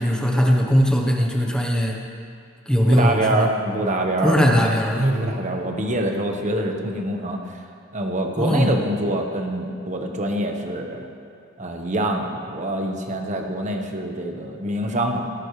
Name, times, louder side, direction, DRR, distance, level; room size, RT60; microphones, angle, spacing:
voice 1, 0.0-2.0 2.7-3.5 4.2-5.1 8.4-8.7, equal, 5° left, 0 dB, 1.0 m, -19 dB
voice 2, 2.9-7.6 7.9-11.1 11.6-15.3, right 1 dB, 40° right, 2 dB, 1.2 m, -25 dB
19.0 x 13.0 x 3.3 m, 2.3 s
head